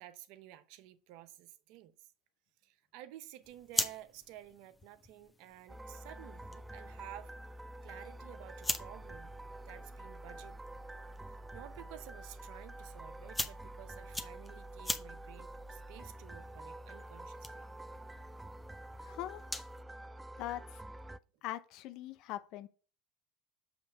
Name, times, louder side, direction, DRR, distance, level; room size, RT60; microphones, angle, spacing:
voice 1, 0.0-2.1 2.6-7.3 7.8-9.3 9.6-10.6 11.2-17.6, right 13 dB, 65° right, 0.7 m, -53 dB
sound 1, 3.4-19.8, left 2 dB, 15° left, 0.8 m, -44 dB
sound 2, 5.7-21.2, right 1 dB, 10° right, 0.4 m, -48 dB
voice 2, 19.0-19.4 20.4-20.8 21.4-22.7, left 14 dB, 60° left, 0.7 m, -41 dB
7.2 x 3.3 x 6.1 m
hypercardioid pair, 95°, 0 cm